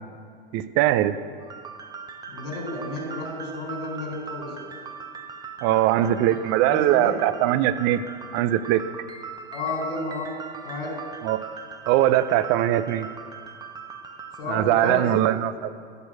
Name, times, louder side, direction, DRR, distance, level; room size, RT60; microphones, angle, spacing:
voice 1, 0.5-1.2 5.6-8.0 8.3-8.9 11.2-11.5 11.9-13.1 14.5-15.7, right 13 dB, 40° right, 14 dB, 0.5 m, -21 dB
sound 1, 1.4-14.4, right 5 dB, 15° right, 0.8 m, -40 dB
voice 2, 2.3-4.6 6.7-7.2 9.5-10.3 10.6-11.0 14.4-15.3, left 2 dB, 65° left, 0 dB, 4.1 m, -31 dB
13.5 x 6.3 x 8.4 m, 2.1 s
hypercardioid pair, 100°, 30 cm